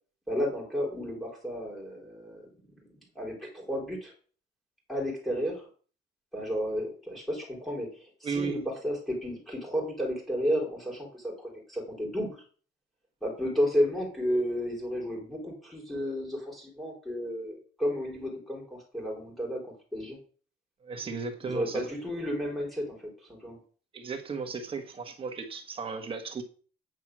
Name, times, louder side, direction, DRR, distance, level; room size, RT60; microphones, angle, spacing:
voice 1, 0.3-2.5 3.2-4.1 4.9-5.6 6.3-12.4 13.2-20.2 21.4-23.0 23.3-23.6, equal, ahead, 4.0 m, -32 dB
voice 2, 8.2-8.6 20.8-21.8 23.9-26.4, right 5 dB, 25° right, 1.5 m, -35 dB
9.4 x 5.6 x 6.2 m
cardioid pair, 165°, 20 cm